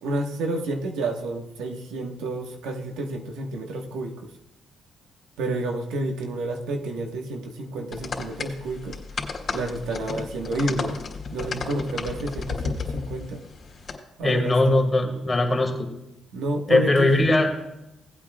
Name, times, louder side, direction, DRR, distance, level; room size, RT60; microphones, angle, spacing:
voice 1, 0.0-4.3 5.4-9.0 9.5-11.0 11.3-13.4 14.2-14.9 16.3-17.1, right 2 dB, 85° right, 3 dB, 1.4 m, -30 dB
sound 1, 7.9-13.9, left 4 dB, 45° left, 2.5 m, -33 dB
voice 2, 14.2-15.9 16.7-17.5, left 2 dB, 25° left, 3 dB, 2.2 m, -20 dB
18.0 x 8.5 x 2.3 m, 0.92 s
cardioid pair, 90°, 0 cm